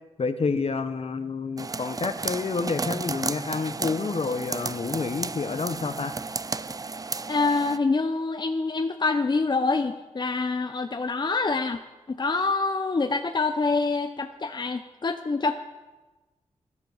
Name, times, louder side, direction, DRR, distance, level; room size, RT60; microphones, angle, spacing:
voice 1, 0.2-6.1, left 4 dB, 50° left, 10 dB, 1.1 m, -29 dB
sound 1, 1.6-7.8, right 4 dB, 30° right, 0.5 m, -33 dB
voice 2, 7.3-11.8 12.1-15.5, left 3 dB, 35° left, 7 dB, 0.8 m, -26 dB
14.5 x 11.0 x 7.2 m, 1.2 s
wide cardioid pair, 85°, 13 cm